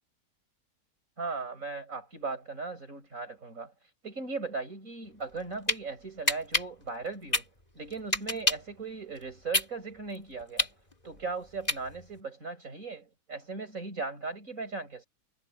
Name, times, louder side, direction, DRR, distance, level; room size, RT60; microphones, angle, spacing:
voice 1, 1.2-3.7 4.0-7.4 7.7-10.7 11.0-15.1, right 4 dB, 55° right, 6.1 m, -38 dB
sound 1, 5.2-5.8 6.3-8.7 9.2-12.2, left 1 dB, 25° left, 3.7 m, -29 dB
omnidirectional pair, 1.7 m